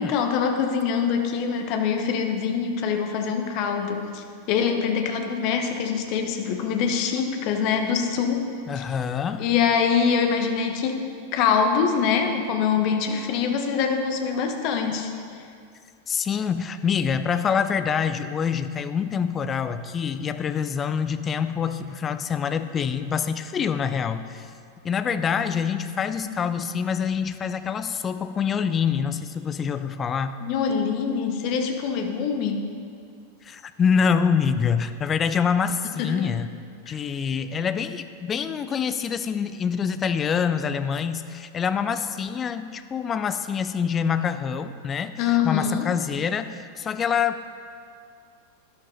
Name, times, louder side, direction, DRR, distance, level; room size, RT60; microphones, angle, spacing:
voice 1, 0.0-8.5 8.8-8.9 9.4-11.0 11.3-15.1 30.4-32.6 36.0-36.3 36.9-37.0 45.2-45.9, left 6 dB, 40° left, 4 dB, 1.2 m, -24 dB
voice 2, 8.7-9.5 16.1-24.5 24.8-30.4 33.4-36.5 36.9-47.4, left 7 dB, 25° left, 11 dB, 0.6 m, -26 dB
12.5 x 11.5 x 4.0 m, 2.3 s
figure-of-eight pair, 90°, 0 cm